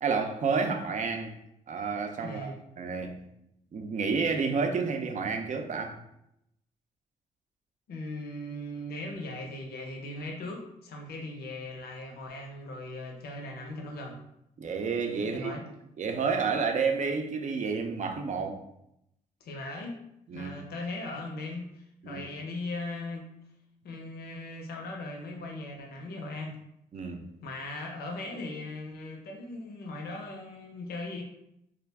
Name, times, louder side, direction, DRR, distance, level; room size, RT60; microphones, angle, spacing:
voice 1, 0.0-1.4 1.7-3.3 3.7-6.0 14.6-15.5 16.0-18.6 20.3-20.5 22.0-22.2 26.9-27.4, right 5 dB, 45° right, 4 dB, 0.5 m, -30 dB
voice 2, 2.2-2.6 7.9-14.2 15.3-15.6 19.4-20.0 20.3-23.3 23.8-26.6 27.4-31.2, left 2 dB, 70° left, 2 dB, 0.6 m, -39 dB
2.4 x 2.2 x 3.3 m, 0.79 s
supercardioid pair, 50°, 17 cm